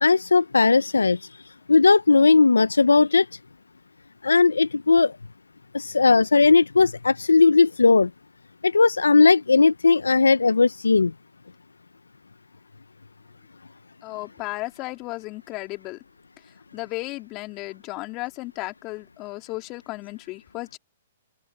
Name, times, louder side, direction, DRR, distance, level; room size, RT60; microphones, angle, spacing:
voice 1, 0.0-1.3 1.7-3.3 4.2-5.1 5.7-8.1 8.6-11.1, left 4 dB, 85° left, 0.8 m, -17 dB
voice 2, 14.0-16.0 16.7-20.8, left 22 dB, 35° left, 3.7 m, -34 dB
open air
figure-of-eight pair, 120°, 0 cm